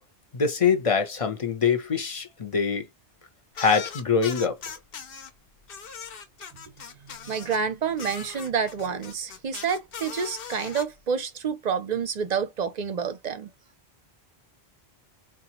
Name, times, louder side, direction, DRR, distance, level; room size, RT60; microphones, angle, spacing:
voice 1, 0.3-2.9 3.6-4.6, left 6 dB, 35° left, 0.7 m, -24 dB
sound 1, 3.5-5.3 5.7-7.6 8.0-10.8, left 6 dB, 60° left, 1.0 m, -39 dB
voice 2, 7.3-13.5, right 6 dB, 50° right, 0.6 m, -28 dB
3.9 x 2.4 x 2.9 m
omnidirectional pair, 1.1 m